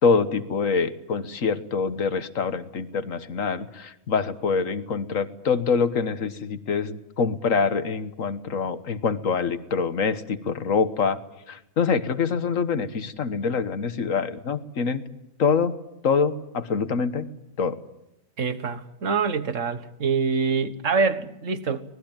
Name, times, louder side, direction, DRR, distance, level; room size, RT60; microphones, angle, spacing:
voice 1, 0.0-11.2 11.5-15.0 15.4-15.8 16.0-17.3 17.6-17.8, left 5 dB, 75° left, 1.7 m, -25 dB
voice 2, 18.4-21.8, right 5 dB, 65° right, 1.8 m, -25 dB
25.5 x 20.0 x 9.0 m
omnidirectional pair, 1.4 m